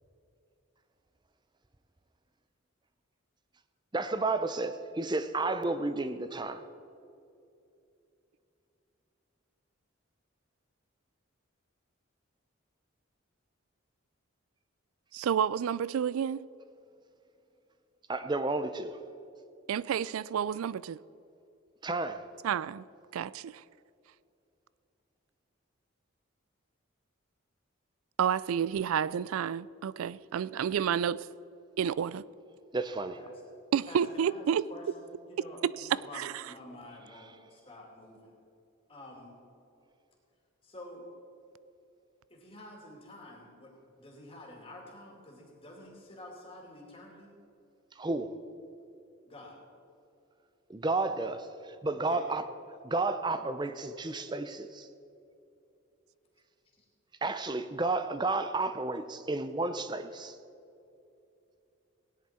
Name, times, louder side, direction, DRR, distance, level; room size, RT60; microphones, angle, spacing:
voice 1, 3.9-6.6 18.1-19.0 21.8-22.2 32.7-33.2 48.0-48.3 50.7-52.4 52.8-54.9 57.2-60.4, right 3 dB, 20° right, 0.5 m, -32 dB
voice 2, 15.1-16.5 19.7-21.0 22.4-22.8 23.1-23.6 28.2-31.3 31.8-32.2 33.7-34.6 36.2-36.3, right 8 dB, 85° right, 0.3 m, -30 dB
voice 3, 33.9-38.3 38.9-39.3 40.6-41.1 42.3-47.3 49.2-49.6 52.1-52.3 56.7-56.8, left 1 dB, 25° left, 2.5 m, -49 dB
17.5 x 10.0 x 4.3 m
head